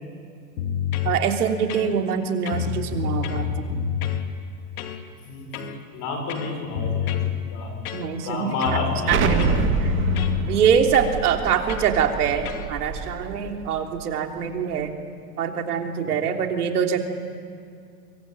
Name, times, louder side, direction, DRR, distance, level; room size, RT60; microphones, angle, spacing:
sound 1, 0.6-1.2 1.7-2.2 2.5-4.2 4.8-5.0 5.5-5.8 6.3-7.4 7.9-8.3 8.6-10.4 10.9-11.2 11.7-11.9 12.5-12.7, left 8 dB, 65° left, 2.6 m, -27 dB
voice 1, 1.0-3.7 7.9-9.2 9.8-10.0 10.5-14.9 15.4-17.0, right 7 dB, 70° right, 3 dB, 3.4 m, -24 dB
voice 2, 5.2-7.2 7.5-7.8 8.2-9.7 16.0-16.1, left 3 dB, 40° left, 4 dB, 6.6 m, -30 dB
Explosion, 9.1-13.8, right 5 dB, 25° right, 2.2 m, -27 dB
24.5 x 23.5 x 9.1 m, 2.3 s
hypercardioid pair, 120°, 47 cm